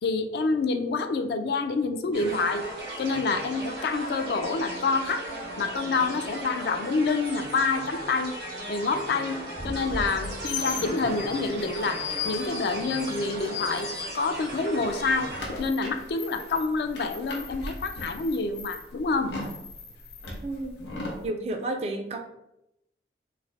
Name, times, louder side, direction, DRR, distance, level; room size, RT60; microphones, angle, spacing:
voice 1, 0.0-2.6 3.0-5.3 5.6-8.4 8.7-13.9 14.1-15.3 15.6-19.3, left 3 dB, 65° left, 8 dB, 0.3 m, -27 dB
sound 1, 2.1-15.5, right 1 dB, 85° right, 1.4 m, -36 dB
sound 2, 10.0-14.6 14.9-21.2, left 4 dB, 80° left, 0.7 m, -37 dB
voice 2, 20.4-20.8 21.2-22.2, right 2 dB, 35° right, 5 dB, 0.3 m, -31 dB
3.1 x 2.1 x 3.9 m, 0.85 s
head